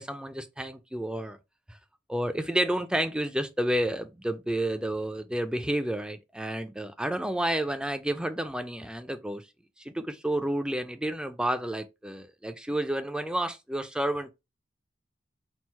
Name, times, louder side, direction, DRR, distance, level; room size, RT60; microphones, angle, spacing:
voice 1, 0.0-1.4 2.1-9.5 9.8-14.3, right 1 dB, 5° right, 0.3 m, -30 dB
4.4 x 2.0 x 4.3 m
head